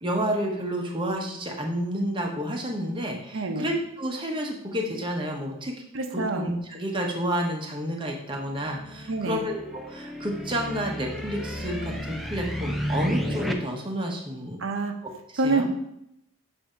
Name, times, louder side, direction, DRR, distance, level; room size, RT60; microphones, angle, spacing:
voice 1, 0.0-5.7 6.1-14.6 15.3-15.7, equal, 20° right, 1 dB, 0.9 m, -30 dB
voice 2, 3.3-3.7 5.9-6.5 9.1-9.5 14.6-14.9 15.4-15.7, right 3 dB, 60° right, 5 dB, 0.7 m, -26 dB
sound 1, 8.7-13.5, equal, ahead, 0.4 m, -32 dB
7.7 x 2.7 x 5.0 m, 0.79 s
head